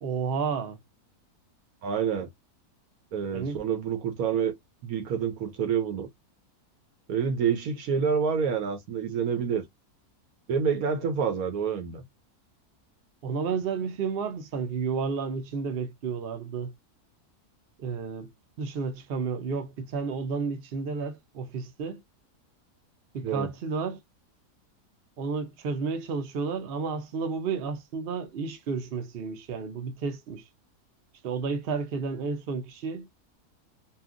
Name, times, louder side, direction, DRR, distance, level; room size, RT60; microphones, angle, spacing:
voice 1, 0.0-0.8 3.3-3.6 13.2-16.7 17.8-18.3 18.6-22.0 23.1-24.0 25.2-30.4 31.2-33.1, right 5 dB, 55° right, 0.7 m, -31 dB
voice 2, 1.8-2.3 3.1-4.5 4.8-6.1 7.1-9.6 10.5-12.0 23.2-23.5, right 7 dB, 70° right, 1.1 m, -27 dB
2.8 x 2.4 x 2.4 m
omnidirectional pair, 1.7 m